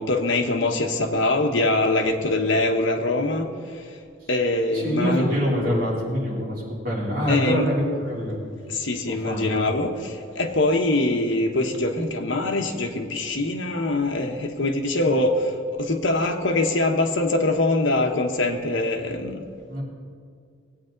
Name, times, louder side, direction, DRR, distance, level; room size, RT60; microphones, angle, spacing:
voice 1, 0.0-3.5 4.3-5.3 7.3-7.7 8.7-15.5 15.8-19.5, left 2 dB, 75° left, 3 dB, 1.2 m, -23 dB
voice 2, 4.7-8.4 9.0-9.5 19.7-19.8, equal, 45° right, -6 dB, 3.3 m, -25 dB
19.0 x 8.7 x 3.9 m, 2.2 s
head